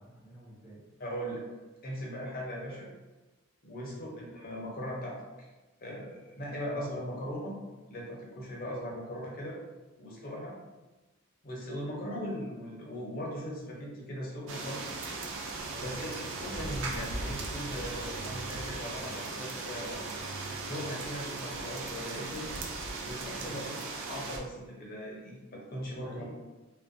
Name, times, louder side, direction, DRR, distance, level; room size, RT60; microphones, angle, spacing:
voice 1, 0.0-0.8 3.8-4.0 15.7-16.0 23.3-23.6 26.0-26.2, equal, ahead, -9 dB, 0.7 m, -49 dB
voice 2, 1.0-1.4 1.8-2.9 3.6-5.5 5.8-7.6 7.9-9.6 10.0-10.6 11.4-14.8 15.8-20.1 20.6-22.6 23.0-23.8 24.1-26.2, equal, 45° left, -3 dB, 0.6 m, -39 dB
sound 1, 14.5-24.4, right 3 dB, 60° right, 0.4 m, -38 dB
2.4 x 2.1 x 2.5 m, 1.2 s
head